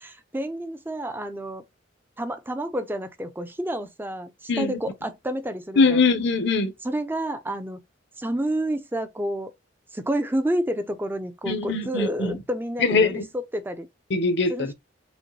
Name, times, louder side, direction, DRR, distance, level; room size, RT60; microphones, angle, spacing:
voice 1, 0.0-1.6 2.2-6.1 6.8-7.8 8.2-9.5 9.9-13.9 14.5-14.7, right 1 dB, 10° right, 0.6 m, -29 dB
voice 2, 5.8-6.7 11.5-12.4 12.8-13.2 14.1-14.7, left 4 dB, 65° left, 0.8 m, -22 dB
5.0 x 2.3 x 3.1 m
head